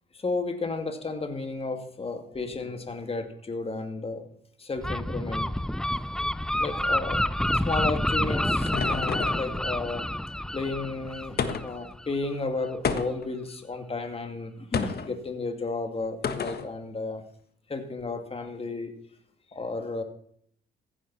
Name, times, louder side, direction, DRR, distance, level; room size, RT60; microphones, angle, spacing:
voice 1, 0.1-4.3 4.6-5.6 6.5-7.3 7.5-10.1 10.4-17.2 17.7-18.9 19.5-20.0, left 3 dB, 30° left, 6 dB, 2.3 m, -33 dB
Gull seagull, 4.8-12.3, left 1 dB, 5° left, 0.4 m, -28 dB
sound 1, 7.9-9.5 11.4-11.9 12.8-13.4 14.7-15.1 16.2-16.7, left 6 dB, 55° left, 1.4 m, -30 dB
15.0 x 11.0 x 4.3 m, 0.64 s
cardioid pair, 90°, 20 cm